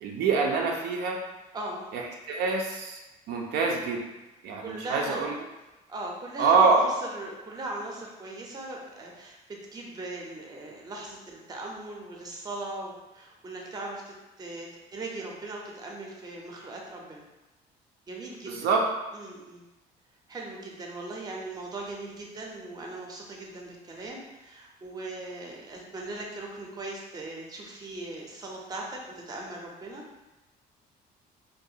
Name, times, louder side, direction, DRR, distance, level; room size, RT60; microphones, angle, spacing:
voice 1, 0.0-1.2 1.9-2.0 2.3-3.0 3.3-4.0 4.4-5.4 6.4-6.9 18.5-18.8, right 4 dB, 75° right, 0 dB, 0.4 m, -25 dB
voice 2, 1.5-1.9 4.6-5.2 5.9-17.2 18.1-18.7 19.1-19.6 20.3-30.0, right 2 dB, 25° right, -1 dB, 0.5 m, -39 dB
2.4 x 2.2 x 2.7 m, 1.0 s
cardioid pair, 110°, 17 cm